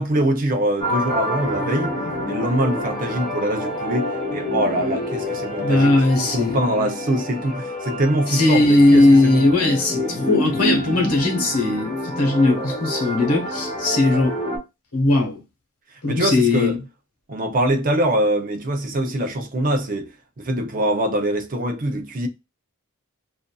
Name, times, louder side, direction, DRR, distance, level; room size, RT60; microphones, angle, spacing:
voice 1, 0.0-2.0 2.3-9.5 16.1-16.8 17.3-20.1 20.4-22.3, right 1 dB, 40° right, 0.5 m, -23 dB
sound 1, 0.8-14.6, equal, 20° left, 0.9 m, -28 dB
voice 2, 5.6-6.6 8.3-14.4 14.9-15.4 16.0-16.8, left 2 dB, 90° left, 1.1 m, -18 dB
2.5 x 2.5 x 2.2 m
head